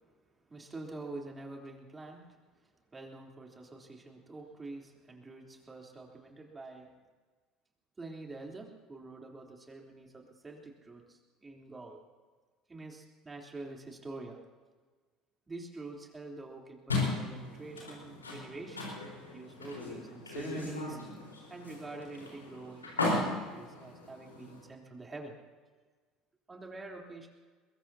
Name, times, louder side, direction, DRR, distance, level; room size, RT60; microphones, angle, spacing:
voice 1, 0.5-6.9 8.0-12.0 12.7-14.4 15.5-18.8 19.3-21.0 21.5-25.4 26.5-27.3, right 3 dB, 20° right, 0 dB, 3.5 m, -46 dB
sound 1, 16.9-24.6, left 2 dB, 90° left, 4.2 m, -37 dB
23.0 x 22.0 x 2.8 m, 1.4 s
figure-of-eight pair, 65°, 0 cm